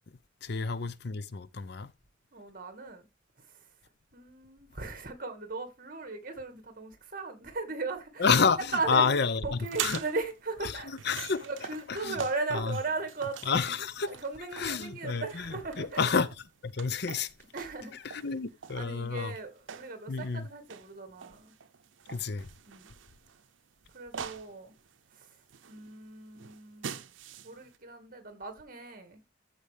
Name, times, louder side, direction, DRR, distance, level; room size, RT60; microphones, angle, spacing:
voice 1, 0.4-1.9 8.2-8.6 8.9-10.0 10.6-10.8 11.0-11.5 11.9-12.2 12.5-12.8 13.5-14.1 14.5-16.3 16.6-17.3 17.9-19.3 20.1-20.5 22.1-22.5, left 5 dB, 60° left, 0.7 m, -29 dB
voice 2, 2.3-3.1 3.4-3.6 4.1-8.3 8.7-9.1 9.4-11.0 11.4-13.8 14.1-16.1 17.5-18.3 18.8-21.5 22.6-22.9 23.9-24.7 25.1-25.3 25.7-27.0 27.4-29.3, right 3 dB, 50° right, 2.1 m, -37 dB
sound 1, 9.5-27.8, right 8 dB, 85° right, 0.7 m, -44 dB
14.0 x 4.9 x 3.5 m
head